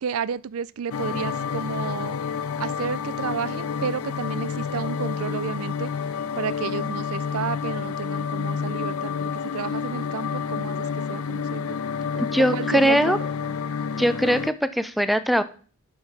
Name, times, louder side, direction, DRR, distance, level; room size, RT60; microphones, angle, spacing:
voice 1, 0.0-2.2 2.6-5.9 6.4-11.8 12.1-13.6, right 7 dB, 85° right, 0.4 m, -32 dB
sound 1, 0.9-14.5, left 6 dB, 80° left, 0.5 m, -29 dB
voice 2, 12.2-13.2 14.0-15.4, equal, ahead, 0.5 m, -21 dB
11.0 x 4.9 x 5.8 m
head